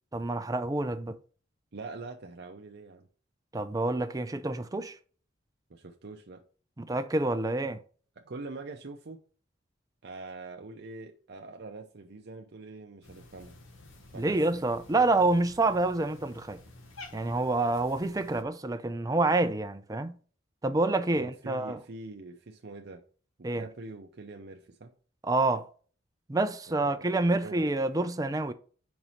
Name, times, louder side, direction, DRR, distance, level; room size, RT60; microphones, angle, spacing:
voice 1, 0.1-1.2 3.5-5.0 6.8-7.8 14.1-16.6 17.1-20.2 20.6-21.8 23.4-23.7 25.2-25.7 26.3-28.5, right 2 dB, 20° right, 0.5 m, -27 dB
voice 2, 1.7-3.1 5.7-6.4 8.2-9.2 10.0-13.6 14.1-14.4 21.1-23.0 23.4-24.9 26.7-28.1, right 3 dB, 55° right, 0.6 m, -44 dB
Cat, 13.0-18.4, left 2 dB, 85° left, 1.3 m, -51 dB
5.1 x 4.7 x 5.5 m
head